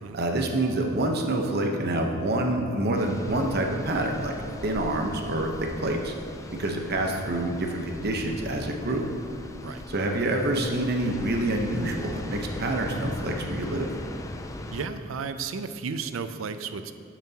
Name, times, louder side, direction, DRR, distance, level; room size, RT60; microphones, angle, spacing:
voice 1, 0.1-4.3 4.6-6.1 6.6-9.0 9.9-13.9, right 1 dB, 55° right, 2 dB, 0.9 m, -27 dB
sound 1, 2.9-14.9, left 1 dB, 15° left, 0.4 m, -40 dB
voice 2, 14.7-16.9, right 5 dB, 80° right, 10 dB, 0.5 m, -33 dB
11.5 x 7.3 x 2.9 m, 2.4 s
head